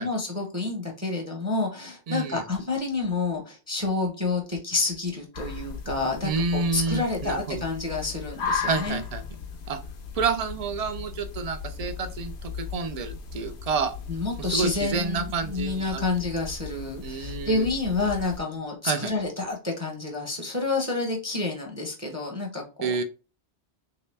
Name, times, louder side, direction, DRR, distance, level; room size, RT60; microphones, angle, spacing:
voice 1, 0.0-9.0 14.1-23.0, left 3 dB, 15° right, 1 dB, 0.7 m, -29 dB
voice 2, 2.1-2.4 6.2-7.6 8.7-9.2 9.7-9.8 10.1-13.9 14.4-16.0 17.0-17.7 18.8-19.1 22.8-23.0, right 4 dB, 60° right, 9 dB, 0.4 m, -29 dB
sound 1, 5.3-18.4, left 6 dB, 85° left, 0.9 m, -37 dB
3.2 x 2.8 x 3.2 m, 0.32 s
omnidirectional pair, 1.1 m